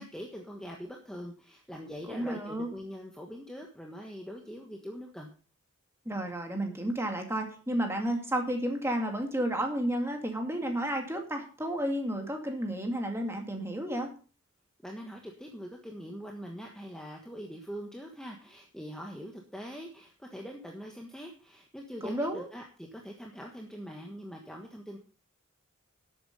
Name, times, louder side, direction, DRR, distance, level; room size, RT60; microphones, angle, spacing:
voice 1, 0.0-5.3 14.8-25.0, equal, 5° left, 0 dB, 1.4 m, -43 dB
voice 2, 2.1-2.7 6.1-14.1 22.0-22.5, right 1 dB, 10° right, 3 dB, 2.2 m, -32 dB
12.5 x 8.4 x 5.4 m, 0.38 s
head